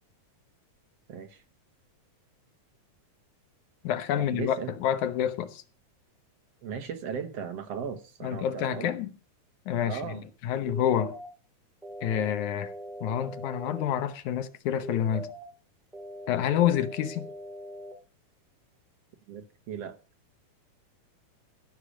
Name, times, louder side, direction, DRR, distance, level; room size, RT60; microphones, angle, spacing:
voice 1, 1.1-1.4 4.1-4.7 6.6-8.9 9.8-10.2 19.3-20.0, right 7 dB, 60° right, 2.1 m, -37 dB
voice 2, 3.8-5.6 8.2-9.1 9.7-11.1 12.0-12.7 13.0-15.3 16.3-17.3, left 10 dB, 75° left, 2.4 m, -28 dB
sound 1, 10.7-11.3 11.8-13.8 14.8-15.4 15.9-17.9, equal, ahead, 4.7 m, -41 dB
15.5 x 6.7 x 6.4 m
omnidirectional pair, 3.5 m